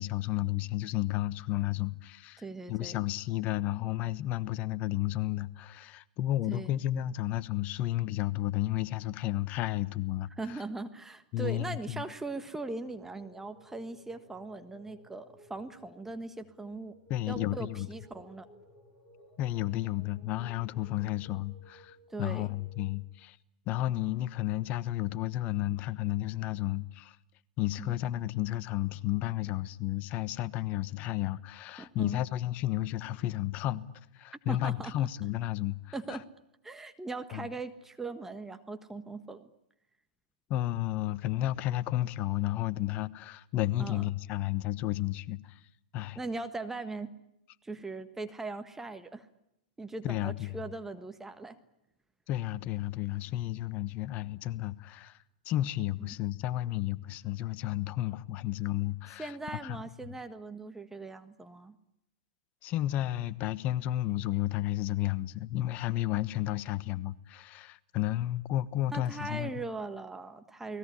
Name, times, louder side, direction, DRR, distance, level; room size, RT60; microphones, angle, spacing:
voice 1, 0.0-2.4 2.7-10.6 11.3-12.0 17.1-17.9 19.4-23.4 23.7-27.2 27.6-33.8 34.1-36.2 37.3-37.5 40.5-45.6 45.9-46.2 50.0-50.6 52.3-59.4 59.6-59.8 62.6-69.6, left 14 dB, 35° left, 1.2 m, -32 dB
voice 2, 2.4-3.0 6.5-6.7 10.4-16.9 17.3-18.5 21.0-21.1 22.1-22.5 27.8-27.9 31.8-32.2 34.5-35.1 35.9-36.2 36.6-39.5 43.8-44.0 46.1-47.1 47.6-49.3 49.8-51.6 56.0-56.1 59.2-61.8 68.9-70.8, right 3 dB, 10° right, 1.5 m, -40 dB
sound 1, 12.8-23.0, equal, 10° left, 6.9 m, -58 dB
29.5 x 20.0 x 10.0 m
hypercardioid pair, 110°, 4 cm